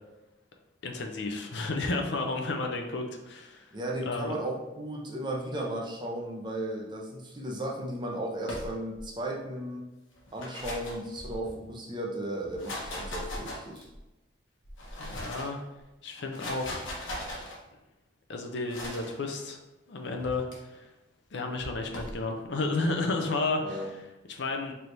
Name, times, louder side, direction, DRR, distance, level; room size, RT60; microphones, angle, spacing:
voice 1, 0.8-3.7 4.0-4.4 15.0-15.6 16.0-16.8 18.3-19.6 19.9-20.9 21.3-24.7, left 3 dB, 60° left, 3 dB, 0.5 m, -32 dB
voice 2, 3.7-9.8 10.3-13.8 23.6-23.9, right 1 dB, 25° right, -1 dB, 0.5 m, -35 dB
sound 1, 8.4-9.1 10.1-11.7 12.4-14.0 14.6-15.6 16.2-17.6 18.7-19.1 20.2-20.6 21.6-22.2, left 1 dB, 80° left, 1.1 m, -39 dB
4.4 x 3.4 x 2.6 m, 1.0 s
head